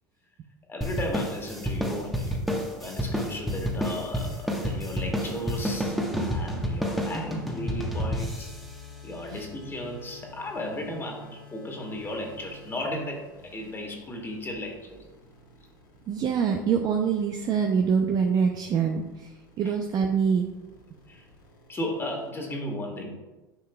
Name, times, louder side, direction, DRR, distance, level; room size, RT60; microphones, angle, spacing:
voice 1, 0.7-2.4 2.7-8.5 9.0-15.1 19.6-19.7 21.1-21.2 21.7-23.2, left 1 dB, 20° left, 1 dB, 1.7 m, -35 dB
sound 1, 0.8-9.6, equal, ahead, 1.2 m, -30 dB
sound 2, 2.8-22.3, left 3 dB, 75° left, 2.3 m, -51 dB
voice 2, 16.1-19.3 19.6-20.5, right 6 dB, 40° right, 3 dB, 0.6 m, -25 dB
9.7 x 5.6 x 2.3 m, 1.1 s
hypercardioid pair, 85°, 11 cm